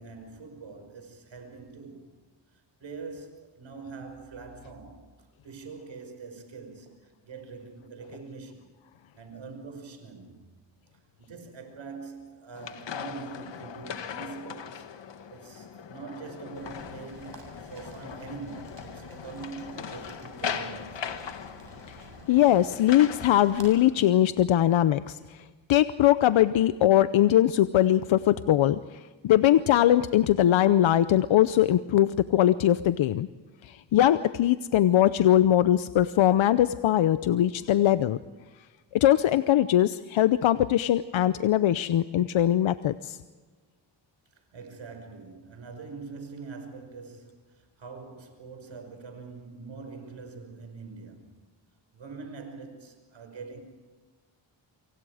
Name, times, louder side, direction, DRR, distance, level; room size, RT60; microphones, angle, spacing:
voice 1, 0.0-2.1 2.8-5.1 5.4-8.7 9.1-10.4 10.9-14.9 15.3-21.1 44.3-51.4 51.9-53.6, right 4 dB, 75° right, 5.7 m, -43 dB
sound 1, 12.5-23.4, left 7 dB, 70° left, 1.7 m, -39 dB
Rain, 16.5-23.7, right 3 dB, 50° right, 7.7 m, -51 dB
voice 2, 22.3-33.3 33.6-38.2 38.9-43.2, left 12 dB, 85° left, 0.7 m, -21 dB
28.5 x 24.5 x 4.9 m
cardioid pair, 90°, 46 cm